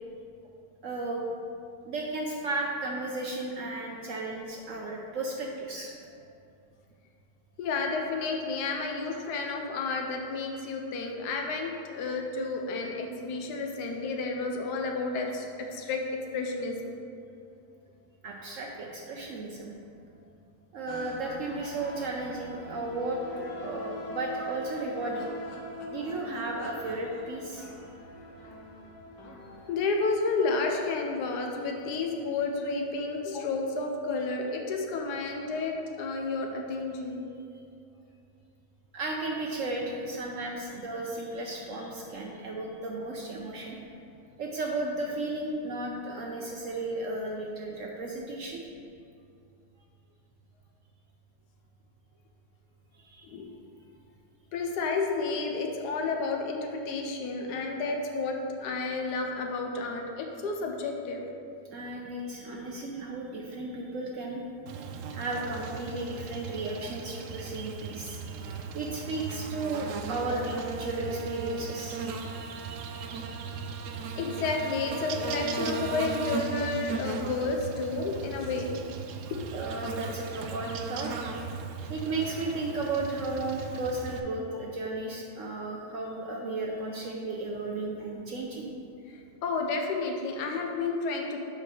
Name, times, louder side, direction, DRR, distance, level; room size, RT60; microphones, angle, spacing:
voice 1, 0.8-1.2 1.8-5.9 18.2-19.7 20.7-23.2 23.6-25.3 25.9-27.7 38.9-43.8 44.4-48.6 53.0-53.3 61.7-64.4 65.1-72.0 79.5-81.1 81.9-88.7, right 2 dB, 65° right, -1 dB, 0.8 m, -34 dB
voice 2, 7.6-17.0 21.3-21.4 29.7-37.3 53.3-53.4 54.5-61.2 74.2-78.8 89.4-91.4, left 3 dB, 70° left, 2 dB, 1.3 m, -31 dB
sound 1, 20.9-29.9, left 1 dB, 90° left, 1.6 m, -42 dB
Buzz, 64.7-84.2, right 5 dB, 90° right, 0.7 m, -37 dB
5.4 x 5.3 x 6.3 m, 2.6 s
omnidirectional pair, 1.9 m